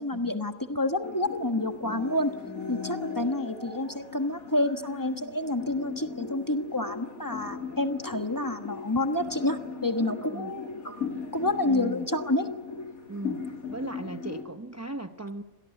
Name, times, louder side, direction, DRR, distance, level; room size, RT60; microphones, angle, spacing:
voice 1, 0.0-2.3 2.7-11.1 11.3-12.5, left 1 dB, 15° left, 7 dB, 1.3 m, -29 dB
sound 1, 1.0-14.4, left 5 dB, 70° left, 2.9 m, -38 dB
voice 2, 10.2-10.5 11.6-12.1 13.1-15.4, right 2 dB, 15° right, 8 dB, 0.5 m, -38 dB
26.5 x 18.0 x 9.5 m, 1.1 s
omnidirectional pair, 1.5 m